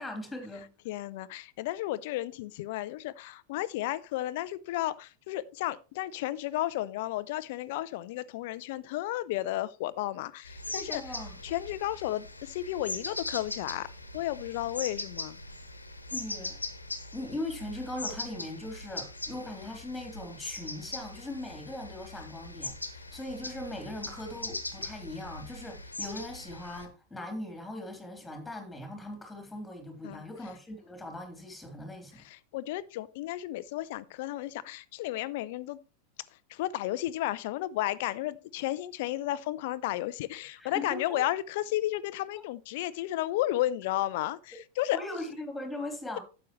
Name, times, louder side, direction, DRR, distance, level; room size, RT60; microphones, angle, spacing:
voice 1, 0.0-0.7 10.7-11.4 16.1-16.6 17.1-32.2 40.4-41.2 44.9-46.2, left 1 dB, 5° left, 3.4 m, -40 dB
voice 2, 0.9-11.0 11.4-13.9 14.1-15.4 30.0-30.2 32.2-35.8 36.5-45.0, left 15 dB, 50° left, 0.6 m, -33 dB
sound 1, 10.4-26.8, left 2 dB, 80° left, 1.3 m, -40 dB
12.0 x 8.4 x 3.1 m
figure-of-eight pair, 90°, 0 cm